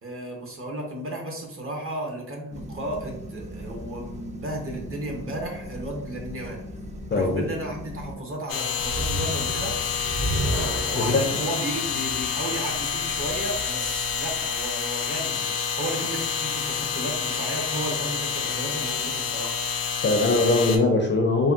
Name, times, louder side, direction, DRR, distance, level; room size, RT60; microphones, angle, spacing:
voice 1, 0.0-6.6 7.1-9.8 10.9-19.5, right 1 dB, 40° right, 0 dB, 0.8 m, -34 dB
sound 1, 2.5-8.2, equal, 20° right, 0.4 m, -39 dB
voice 2, 7.1-7.4 10.9-11.2 20.0-21.5, left 3 dB, 35° left, 3 dB, 0.4 m, -21 dB
sound 2, 8.5-20.8, left 6 dB, 85° left, 0.5 m, -28 dB
sound 3, 8.8-14.1, right 1 dB, 70° right, 1.2 m, -32 dB
3.4 x 2.2 x 2.5 m, 0.80 s
cardioid pair, 100°, 33 cm